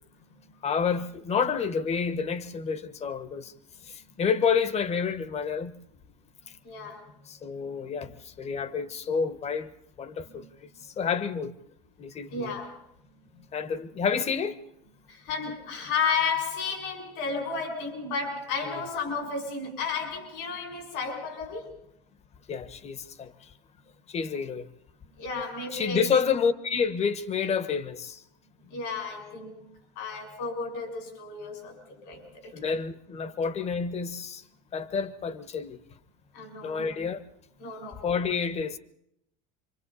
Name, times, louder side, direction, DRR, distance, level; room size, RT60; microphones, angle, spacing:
voice 1, 0.6-3.5 3.8-5.8 7.3-9.7 10.0-10.5 10.8-11.5 12.0-12.5 13.5-14.6 18.7-18.8 22.5-23.5 24.1-24.7 25.7-28.2 32.5-34.4 34.7-35.8 36.6-37.2 38.0-38.8, left 6 dB, 35° left, 1.2 m, -29 dB
voice 2, 6.6-7.0 10.3-10.5 12.3-12.8 15.1-21.7 25.2-26.1 28.7-32.5 36.3-37.0 37.6-38.0, left 5 dB, 80° left, 5.9 m, -33 dB
27.5 x 24.5 x 4.2 m
supercardioid pair, 115°, 20 cm